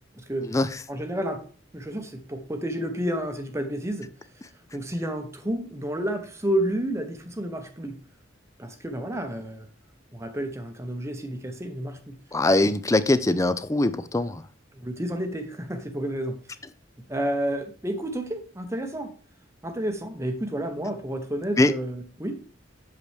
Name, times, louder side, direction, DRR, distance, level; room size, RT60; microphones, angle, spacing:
voice 1, 0.9-1.4 1.7-4.1 4.7-8.0 8.6-9.7 10.1-12.2 14.8-16.4 17.1-19.1 19.6-22.4, right 1 dB, 15° right, 0.8 m, -30 dB
voice 2, 12.3-14.4 21.6-21.7, left 2 dB, 15° left, 0.4 m, -22 dB
8.1 x 6.8 x 3.3 m
head